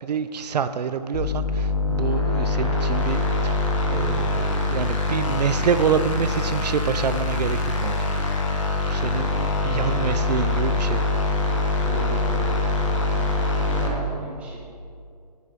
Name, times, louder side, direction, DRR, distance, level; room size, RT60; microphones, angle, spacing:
voice 1, 0.0-3.6 3.9-8.4 8.9-11.0, right 7 dB, 75° right, 11 dB, 0.4 m, -27 dB
sound 1, 1.1-13.9, left 2 dB, 45° left, 1.2 m, -24 dB
voice 2, 11.7-12.5 12.8-14.6, equal, 5° right, -7 dB, 1.2 m, -37 dB
8.3 x 4.6 x 5.7 m, 2.5 s
hypercardioid pair, 165°, 21 cm